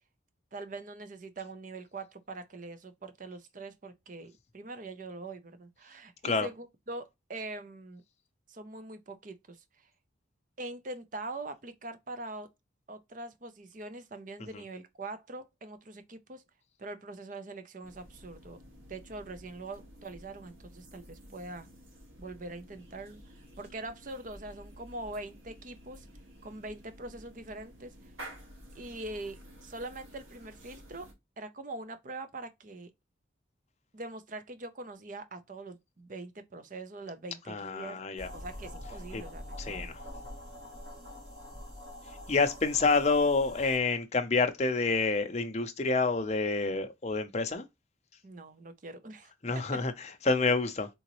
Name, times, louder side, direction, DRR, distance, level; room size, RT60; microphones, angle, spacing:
voice 1, 0.5-8.0 8.5-9.6 10.6-12.5 12.9-16.4 16.8-18.6 18.9-21.7 22.2-26.1 26.4-27.9 28.7-31.1 31.4-32.9 33.9-38.0 38.3-39.9 48.2-49.3 49.7-49.8, right 2 dB, 40° right, 0.6 m, -43 dB
sound 1, 17.8-31.1, right 1 dB, 90° right, 1.6 m, -52 dB
voice 2, 37.5-38.3 39.1-39.2 39.6-40.0 42.3-47.6 49.4-50.9, left 3 dB, 35° left, 0.6 m, -28 dB
sound 2, 38.2-43.8, left 1 dB, 65° right, 2.6 m, -44 dB
3.9 x 3.8 x 3.0 m
head